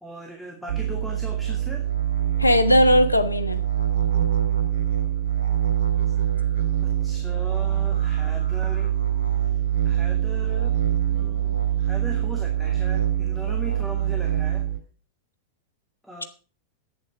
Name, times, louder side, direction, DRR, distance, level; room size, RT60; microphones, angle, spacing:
voice 1, 0.0-1.9 6.0-6.1 6.8-8.9 9.5-10.8 11.1-14.7 16.0-16.2, equal, ahead, 2 dB, 2.4 m, -39 dB
sound 1, 0.7-14.8, right 11 dB, 75° right, 3.7 m, -24 dB
voice 2, 2.4-3.6, left 1 dB, 85° left, 10 dB, 1.3 m, -18 dB
11.0 x 9.0 x 6.1 m, 0.37 s
figure-of-eight pair, 90°, 0 cm